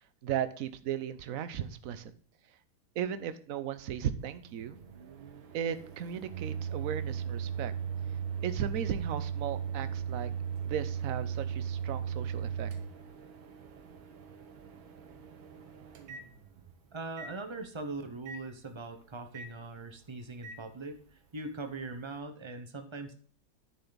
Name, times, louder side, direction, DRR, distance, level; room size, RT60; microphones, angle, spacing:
voice 1, 0.2-2.1 3.0-4.8 5.5-7.7 8.4-10.3 10.7-12.7, right 9 dB, 65° right, 12 dB, 0.8 m, -36 dB
Microwave oven, 4.2-16.7 17.2-17.3 18.3-18.4 19.3-19.5 20.4-20.6, right 7 dB, 80° right, 1.9 m, -38 dB
voice 2, 16.9-23.1, right 3 dB, 40° right, 7 dB, 0.4 m, -41 dB
10.5 x 9.0 x 4.0 m, 0.44 s
omnidirectional pair, 2.2 m